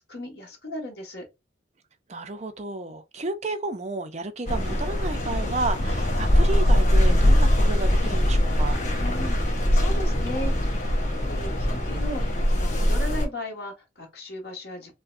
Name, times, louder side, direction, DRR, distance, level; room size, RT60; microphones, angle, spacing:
voice 1, 0.1-1.2 9.0-10.9 11.2-14.9, left 1 dB, 55° left, 1.6 m, -36 dB
voice 2, 2.1-8.8, right 2 dB, 35° right, 0.5 m, -32 dB
sound 1, 4.5-13.3, equal, 40° left, 1.1 m, -22 dB
4.8 x 2.2 x 2.5 m
head